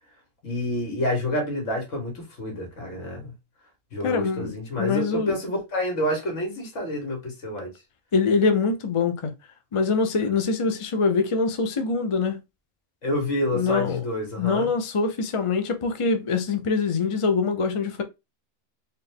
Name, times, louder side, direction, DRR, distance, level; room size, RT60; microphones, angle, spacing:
voice 1, 0.4-3.3 3.9-7.7 13.0-14.7, left 1 dB, 70° left, 1.9 m, -28 dB
voice 2, 4.0-5.4 8.1-9.3 9.7-12.4 13.5-14.0 14.4-18.0, left 4 dB, 40° left, 0.5 m, -24 dB
4.2 x 2.6 x 3.5 m
omnidirectional pair, 1.4 m